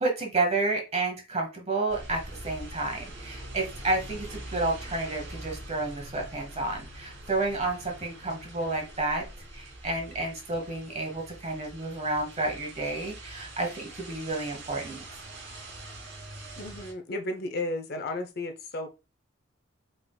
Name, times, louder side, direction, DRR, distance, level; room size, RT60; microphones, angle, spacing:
voice 1, 0.0-9.2 9.5-15.0, right 2 dB, 30° right, 2 dB, 1.3 m, -30 dB
sound 1, 1.9-16.9, right 1 dB, 70° right, 2.3 m, -44 dB
voice 2, 16.6-18.9, left 2 dB, 50° left, 6 dB, 0.6 m, -33 dB
4.8 x 3.7 x 2.2 m, 0.28 s
head